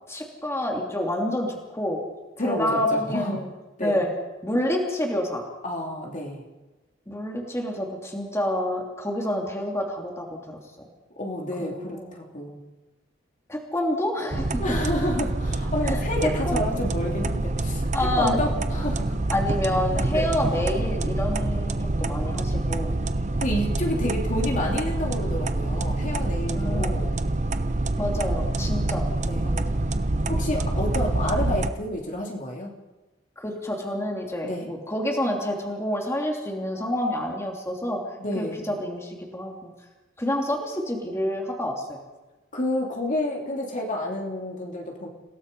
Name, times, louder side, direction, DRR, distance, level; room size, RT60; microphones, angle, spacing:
voice 1, 0.1-2.0 2.4-3.5 3.8-4.1 4.4-5.4 7.1-10.6 11.6-12.1 13.5-14.5 15.8-16.0 16.5-16.8 17.9-18.4 19.3-23.0 26.5-27.1 28.0-29.1 29.4-29.6 33.4-38.0 38.3-39.7 40.2-42.0, left 1 dB, 15° left, 0 dB, 2.8 m, -28 dB
voice 2, 2.4-3.4 3.8-4.0 5.6-6.4 11.2-12.6 14.6-19.1 20.1-20.3 23.4-27.2 29.2-29.5 30.3-32.7 34.4-34.7 38.2-38.6 42.5-45.1, left 1 dB, 40° left, 0 dB, 2.9 m, -29 dB
sound 1, 14.3-31.7, right 2 dB, 35° right, 0.9 m, -26 dB
28.0 x 17.5 x 5.4 m, 1.1 s
head